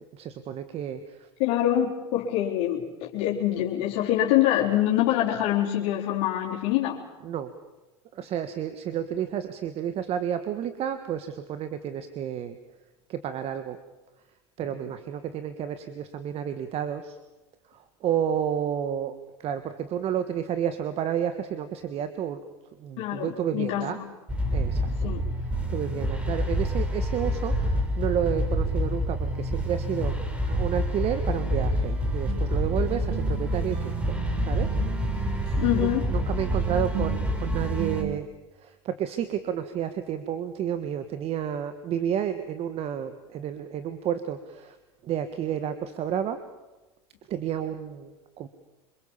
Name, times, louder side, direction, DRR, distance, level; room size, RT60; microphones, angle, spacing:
voice 1, 0.1-1.3 7.2-7.5 8.1-12.6 13.1-13.8 14.6-17.2 17.7-22.4 22.8-24.0 24.5-25.1 25.4-30.2 30.4-34.7 35.0-35.5 35.7-38.3 38.6-44.8 45.0-46.4 47.3-48.5, right 9 dB, 45° right, 10 dB, 1.6 m, -31 dB
voice 2, 1.4-7.0 23.0-23.9 25.0-25.2 35.6-36.0, left 12 dB, 70° left, -5 dB, 4.1 m, -25 dB
sound 1, 24.3-38.0, equal, 10° right, 6.3 m, -27 dB
sound 2, 31.3-38.2, right 9 dB, 75° right, 2.4 m, -37 dB
26.0 x 22.0 x 7.3 m, 1.1 s
supercardioid pair, 105°, 14 cm